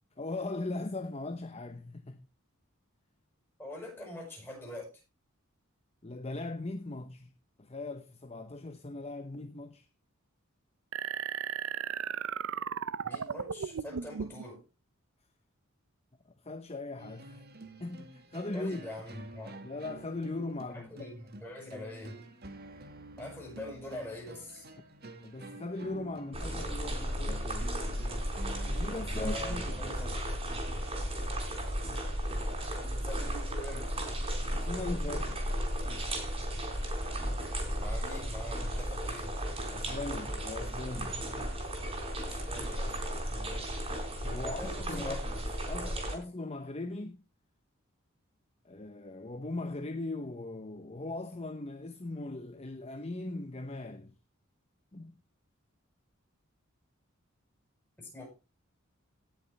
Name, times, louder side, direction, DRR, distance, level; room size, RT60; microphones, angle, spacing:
voice 1, 0.2-2.3 6.0-7.3 7.6-9.9 16.3-17.4 17.8-18.9 19.6-21.1 25.2-27.8 28.6-30.2 34.5-35.5 39.7-41.3 44.2-45.2 45.6-47.2 48.6-54.1 54.9-55.2, left 2 dB, 30° left, 0.8 m, -39 dB
voice 2, 3.6-4.9 13.0-14.6 18.5-19.6 20.7-22.2 23.2-24.7 29.0-30.2 33.0-33.9 37.8-39.3 42.2-43.0 43.3-43.6 44.4-45.2 45.7-46.1 58.0-58.3, left 1 dB, 10° left, 6.9 m, -43 dB
sound 1, 10.9-14.4, right 7 dB, 70° right, 0.5 m, -35 dB
sound 2, 17.0-30.0, right 1 dB, 50° right, 1.8 m, -49 dB
sound 3, 26.3-46.1, equal, 25° right, 4.0 m, -34 dB
17.5 x 6.9 x 3.3 m
head